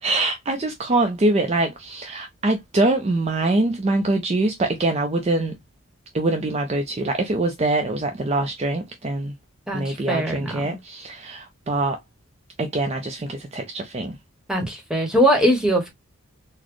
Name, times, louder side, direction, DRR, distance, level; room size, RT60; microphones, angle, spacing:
voice 1, 0.0-5.6 6.1-9.3 9.7-12.0 12.6-14.2, right 2 dB, 30° right, 0.4 m, -24 dB
voice 2, 9.7-10.8 14.5-15.9, equal, 5° right, 1.0 m, -21 dB
4.0 x 2.1 x 3.0 m
head